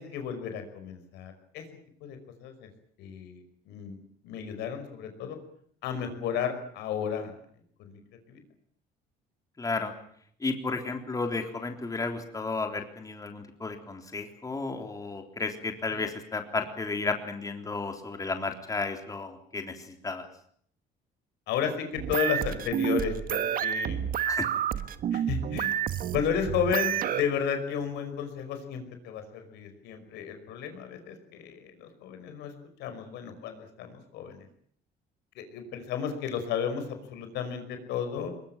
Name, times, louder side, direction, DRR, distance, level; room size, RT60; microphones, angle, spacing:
voice 1, 0.0-1.6 2.0-2.7 3.0-4.0 4.2-5.4 5.8-7.3 7.8-8.0 8.3-8.4 15.9-16.0 21.5-24.1 25.1-25.9 26.1-32.5 32.8-34.5 35.4-38.3, left 7 dB, 85° left, 7 dB, 5.3 m, -33 dB
voice 2, 9.6-9.9 10.4-20.3 24.2-24.5, left 3 dB, 20° left, 5 dB, 3.6 m, -33 dB
sound 1, 21.9-27.2, right 10 dB, 55° right, 1.5 m, -29 dB
22.0 x 22.0 x 8.9 m, 0.64 s
cardioid pair, 110°, 17 cm